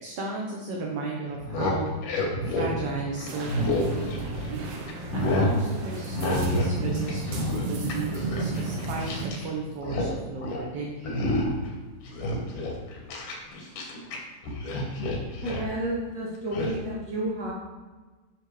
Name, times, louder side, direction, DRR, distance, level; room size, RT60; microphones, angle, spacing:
voice 1, 0.0-1.9 2.4-4.7 5.1-7.3 7.7-11.2 12.4-12.6, right 3 dB, 60° right, -2 dB, 1.8 m, -35 dB
sound 1, 1.3-4.5 4.9-5.6 6.1-6.8 7.0-9.5 9.7-10.1 10.4-10.7 11.1-11.7 12.1-14.2 14.4-15.7 16.5-16.7, left 1 dB, 85° left, 3.1 m, -28 dB
sound 2, 3.3-9.3, right 3 dB, 80° right, 2.5 m, -34 dB
voice 2, 15.4-17.5, right 1 dB, 30° right, -5 dB, 2.6 m, -31 dB
12.0 x 6.3 x 3.3 m, 1.3 s
omnidirectional pair, 3.6 m